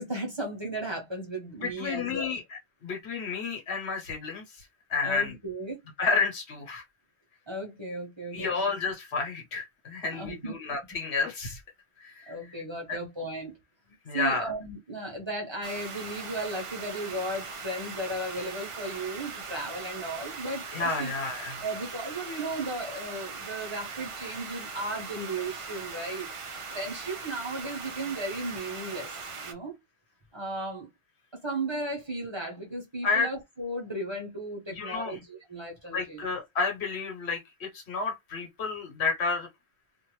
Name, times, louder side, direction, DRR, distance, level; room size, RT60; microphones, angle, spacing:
voice 1, 0.0-2.4 5.0-5.8 7.5-8.6 10.1-10.5 12.3-13.6 14.1-21.1 21.6-26.3 26.7-29.8 30.3-30.9 31.3-36.2, right 1 dB, 25° right, 1.0 m, -35 dB
voice 2, 1.6-2.4 2.8-4.4 4.9-5.3 6.0-6.8 8.3-11.6 12.0-12.3 12.9-13.0 14.0-14.5 20.7-21.6 33.0-33.3 34.7-35.2 35.9-39.5, left 4 dB, 90° left, 1.3 m, -30 dB
sound 1, 15.6-29.5, right 4 dB, 45° right, 0.4 m, -40 dB
2.5 x 2.5 x 3.0 m
omnidirectional pair, 1.1 m